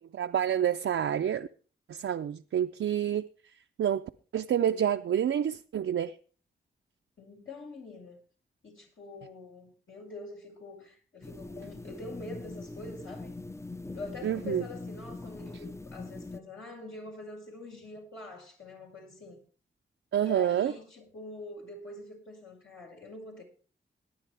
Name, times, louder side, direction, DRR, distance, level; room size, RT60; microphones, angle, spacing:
voice 1, 0.1-1.5 1.9-3.3 3.8-6.2 14.2-14.6 20.1-20.7, right 9 dB, 75° right, 0.5 m, -28 dB
voice 2, 7.2-8.2 8.6-13.4 13.9-19.4 20.2-23.4, left 2 dB, 70° left, 5.5 m, -45 dB
sound 1, 11.2-16.4, left 2 dB, 15° left, 0.5 m, -42 dB
18.5 x 9.9 x 3.4 m
cardioid pair, 50°, 21 cm